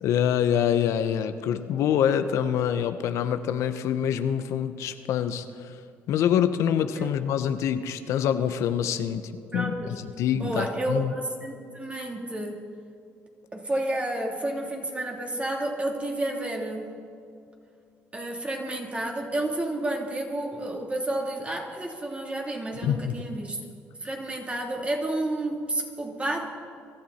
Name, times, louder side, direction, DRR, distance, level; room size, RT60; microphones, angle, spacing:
voice 1, 0.0-5.7 6.1-9.7 10.2-11.1 22.8-23.1, left 9 dB, 75° left, 10 dB, 0.8 m, -25 dB
voice 2, 9.5-10.0 10.3-12.6 13.5-16.9 18.1-23.6 24.0-26.5, right 1 dB, 25° right, 0 dB, 3.1 m, -30 dB
24.0 x 13.0 x 4.3 m, 2.4 s
supercardioid pair, 75°, 5 cm